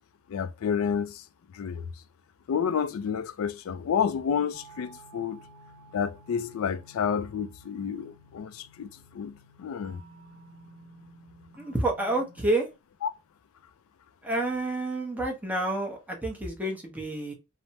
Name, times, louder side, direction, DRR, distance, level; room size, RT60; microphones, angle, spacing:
voice 1, 0.3-1.2 1.5-1.9 2.5-5.4 5.9-10.0 13.0-13.1, left 7 dB, 65° left, 0.3 m, -30 dB
sound 1, 4.5-12.5, right 1 dB, 50° right, 0.6 m, -53 dB
voice 2, 11.6-12.7 14.2-17.3, right 2 dB, 5° right, 0.7 m, -29 dB
3.3 x 2.0 x 2.7 m
head